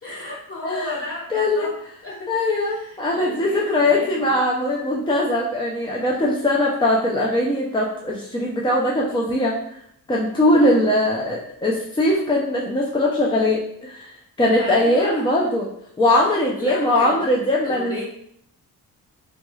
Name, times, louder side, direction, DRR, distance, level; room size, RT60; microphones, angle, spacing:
voice 1, 0.0-1.7 2.0-4.4 10.6-11.0 14.5-15.2 16.1-16.2 16.6-17.2 17.6-18.0, left 1 dB, 40° left, -7 dB, 1.5 m, -34 dB
voice 2, 0.6-1.0 1.3-1.7 2.3-9.6 10.1-14.1 14.4-15.7 16.0-18.0, left 1 dB, 15° left, -3 dB, 0.3 m, -21 dB
3.0 x 3.0 x 2.2 m, 0.69 s
cardioid pair, 120°, 36 cm